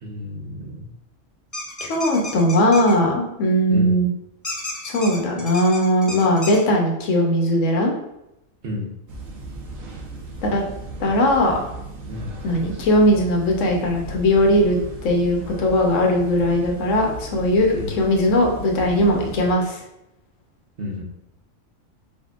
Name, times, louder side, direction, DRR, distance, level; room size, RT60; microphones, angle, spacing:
voice 1, 0.0-0.9 3.7-4.0 8.6-8.9 12.1-12.3 17.7-18.0 20.8-21.0, left 1 dB, 50° right, 0 dB, 0.9 m, -31 dB
sound 1, 1.5-2.9 4.4-6.6, left 1 dB, 25° left, 0.4 m, -32 dB
voice 2, 1.9-4.1 4.8-7.9 10.4-10.6 11.0-11.6 12.4-19.8, equal, 70° left, 0 dB, 1.1 m, -19 dB
sound 2, 9.1-19.5, right 2 dB, 80° right, 1.2 m, -36 dB
4.6 x 3.5 x 2.4 m, 0.87 s
omnidirectional pair, 1.4 m